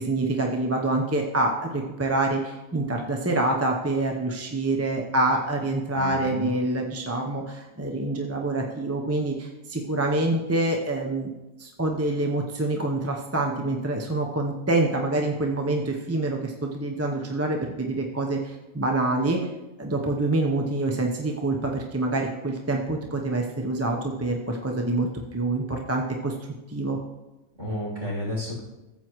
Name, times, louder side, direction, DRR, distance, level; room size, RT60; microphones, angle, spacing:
voice 1, 0.0-11.3 11.6-19.4 19.8-26.4 26.7-27.0, right 2 dB, 15° right, 1 dB, 0.5 m, -26 dB
voice 2, 5.9-6.5 27.6-28.6, equal, 35° right, -8 dB, 3.5 m, -31 dB
14.5 x 7.7 x 3.1 m, 1.0 s
omnidirectional pair, 1.4 m